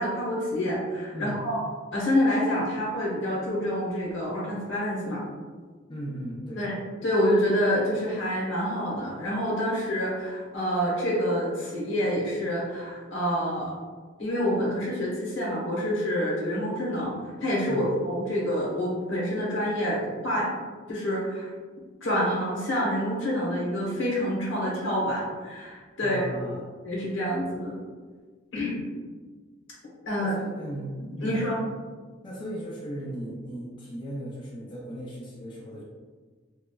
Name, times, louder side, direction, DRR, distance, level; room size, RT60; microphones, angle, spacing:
voice 1, 0.0-1.6 1.9-5.2 6.6-6.7 7.0-13.7 14.2-17.1 17.4-20.5 20.9-21.5 22.0-26.3 26.8-27.8 28.5-28.8 30.1-30.3 31.0-31.6, equal, 85° left, -5 dB, 0.9 m, -27 dB
voice 2, 1.1-1.5 5.9-6.6 17.7-17.9 26.0-26.7 30.2-31.4 32.2-35.8, right 1 dB, 25° left, -4 dB, 0.3 m, -37 dB
2.9 x 2.3 x 2.3 m, 1.5 s
head